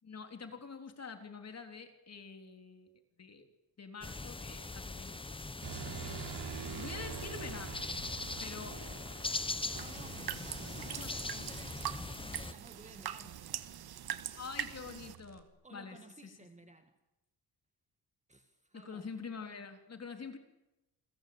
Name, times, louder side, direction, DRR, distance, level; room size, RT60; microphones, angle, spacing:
voice 1, 0.0-2.9 3.2-3.5 3.8-5.4 5.7-6.3 6.7-7.9 8.4-8.8 10.6-11.1 11.4-11.5 14.4-16.3 18.7-20.4, left 5 dB, 40° left, 7 dB, 3.7 m, -46 dB
sound 1, 4.0-12.5, left 3 dB, 15° left, 1.0 m, -41 dB
sound 2, 5.6-9.5 11.8-15.4, right 9 dB, 85° right, 3.6 m, -46 dB
voice 2, 8.7-9.1 9.7-14.0 15.6-17.0 18.3-19.1, right 2 dB, 15° right, 8 dB, 1.8 m, -56 dB
sound 3, 9.7-15.2, right 10 dB, 70° right, 1.9 m, -42 dB
29.5 x 22.5 x 8.8 m, 0.97 s
cardioid pair, 125°, 40 cm